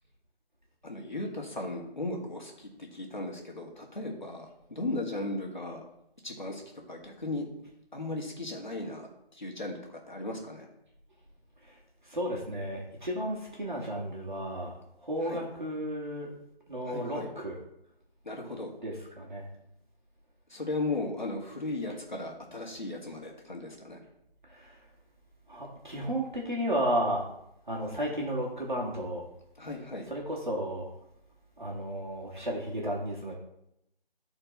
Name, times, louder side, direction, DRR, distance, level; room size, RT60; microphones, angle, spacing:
voice 1, 0.8-5.8 6.2-6.6 6.9-7.4 7.9-10.7 15.2-15.4 16.8-17.3 18.3-18.7 20.5-24.0 29.6-30.1, left 2 dB, 50° left, 0 dB, 1.9 m, -36 dB
voice 2, 12.1-14.7 15.0-16.3 16.7-17.6 18.8-19.5 24.5-24.8 25.5-27.2 27.7-29.3 30.1-30.9 31.6-33.3, equal, 50° right, -3 dB, 2.0 m, -33 dB
13.0 x 4.5 x 4.2 m, 0.81 s
figure-of-eight pair, 180°, 30 cm